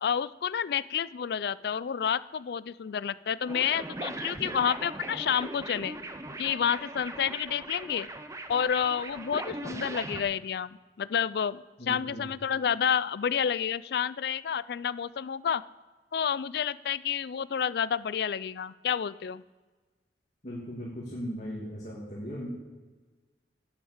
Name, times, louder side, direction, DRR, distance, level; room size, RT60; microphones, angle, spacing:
voice 1, 0.0-6.0 6.4-8.1 8.5-15.6 16.1-19.4, left 8 dB, 60° left, 18 dB, 0.4 m, -29 dB
sound 1, 3.5-10.2, right 2 dB, 15° right, 0.7 m, -39 dB
voice 2, 11.8-12.2 20.4-22.5, equal, 40° left, -6 dB, 2.4 m, -38 dB
10.0 x 6.0 x 7.2 m, 1.3 s
head